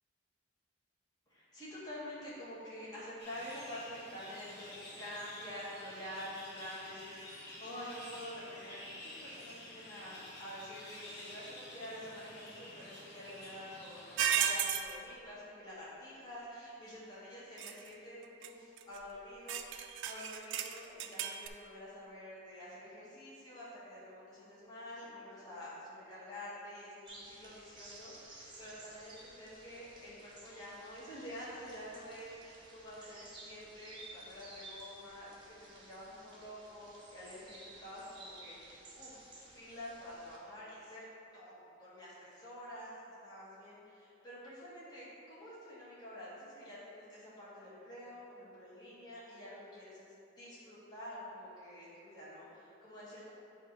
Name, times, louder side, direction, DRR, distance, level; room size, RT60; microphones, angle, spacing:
voice 1, 1.3-35.3 35.7-39.3 39.5-41.0 41.3-42.9 43.2-53.3, left 1 dB, 20° left, -10 dB, 1.3 m, -48 dB
sound 1, 3.2-14.2, left 1 dB, 55° left, 1.4 m, -50 dB
sound 2, 14.2-14.9 17.6-17.9 18.4-18.5 18.8-19.0 19.5-21.5, right 9 dB, 70° right, 0.3 m, -34 dB
sound 3, 27.1-40.4, right 2 dB, 25° right, 1.0 m, -55 dB
8.4 x 2.8 x 5.1 m, 2.7 s
head